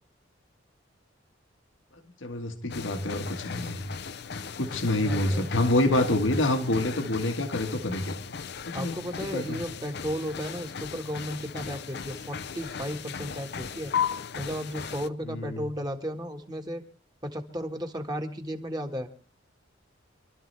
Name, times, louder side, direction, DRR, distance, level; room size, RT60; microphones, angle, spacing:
voice 1, 2.2-3.8 4.6-8.2 8.6-9.6 15.2-15.7, left 1 dB, 80° left, 6 dB, 1.7 m, -27 dB
sound 1, 2.7-15.1, left 7 dB, 60° left, 0.6 m, -37 dB
voice 2, 5.0-5.5 8.7-13.9 14.3-16.8 17.2-19.1, equal, 20° right, 4 dB, 1.6 m, -34 dB
26.5 x 12.5 x 3.4 m, 0.40 s
head